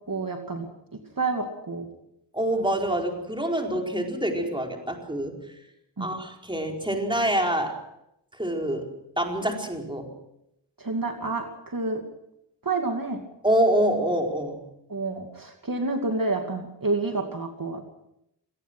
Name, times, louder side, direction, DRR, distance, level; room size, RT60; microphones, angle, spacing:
voice 1, 0.1-0.7 1.2-1.9 6.0-6.1 10.8-12.0 12.6-13.2 14.9-17.8, right 3 dB, 50° right, 3 dB, 2.5 m, -29 dB
voice 2, 2.3-5.6 6.0-7.8 8.3-8.9 9.2-10.1 13.4-14.6, right 1 dB, 10° right, 1 dB, 4.7 m, -26 dB
26.0 x 18.5 x 6.3 m, 0.82 s
wide cardioid pair, 70°, 44 cm